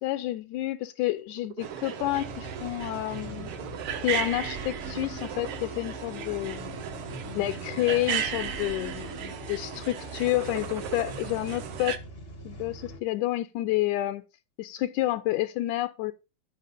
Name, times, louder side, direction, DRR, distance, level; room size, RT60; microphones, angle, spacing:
voice 1, 0.0-3.5 4.0-6.9 7.3-12.0 12.5-14.2 14.6-16.1, left 16 dB, 80° left, 1.8 m, -29 dB
sound 1, 1.2-2.2 2.7-2.9 3.2-4.5 4.8-5.9 6.6-7.0 7.6-8.4 8.7-9.2 10.1-11.3, right 10 dB, 80° right, 2.6 m, -43 dB
sound 2, 1.6-12.0, right 8 dB, 65° right, 1.4 m, -36 dB
sound 3, 2.0-13.0, left 1 dB, 60° left, 0.6 m, -44 dB
13.0 x 4.5 x 5.3 m
omnidirectional pair, 3.9 m